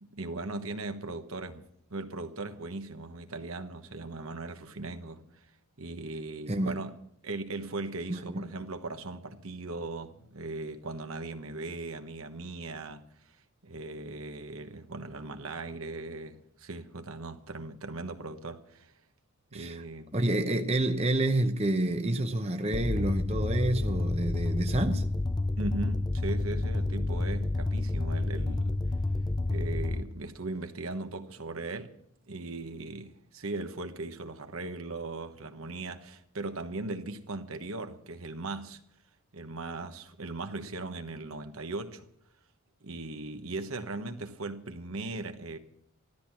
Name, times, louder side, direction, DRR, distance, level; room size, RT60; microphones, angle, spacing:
voice 1, 0.0-5.2 5.8-6.9 7.2-13.0 13.6-18.9 19.5-20.1 25.6-28.8 29.5-31.9 32.3-38.8 39.3-42.1 42.8-45.6, right 2 dB, 75° right, 1.2 m, -38 dB
voice 2, 6.5-6.8 8.1-8.4 19.5-19.8 20.1-25.1, right 1 dB, 30° right, 0.8 m, -28 dB
sound 1, 22.7-30.0, left 2 dB, 20° left, 0.5 m, -29 dB
14.5 x 13.0 x 6.0 m
head